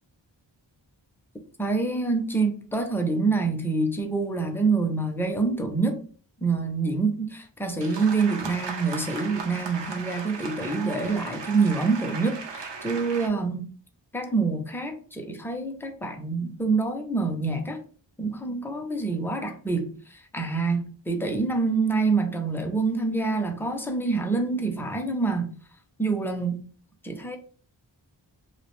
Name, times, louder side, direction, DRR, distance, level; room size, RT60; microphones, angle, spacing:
voice 1, 1.6-6.0 6.4-13.7 14.1-17.8 18.2-25.5 26.0-26.6 27.0-27.4, right 4 dB, 5° left, 0.4 m, -26 dB
sound 1, 7.8-13.3, right 4 dB, 70° right, 0.6 m, -37 dB
2.4 x 2.0 x 3.0 m
wide cardioid pair, 65°, 45 cm